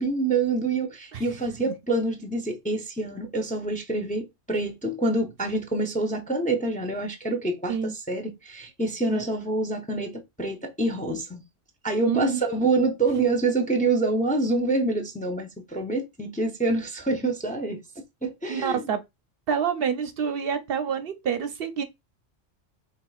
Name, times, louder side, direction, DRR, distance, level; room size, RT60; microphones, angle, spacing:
voice 1, 0.0-11.4 11.8-17.8 18.2-18.9, right 2 dB, 10° left, 0.5 m, -26 dB
voice 2, 12.0-12.4 18.5-19.0 19.5-21.8, right 7 dB, 65° right, 0.7 m, -27 dB
4.6 x 3.5 x 2.3 m
omnidirectional pair, 1.2 m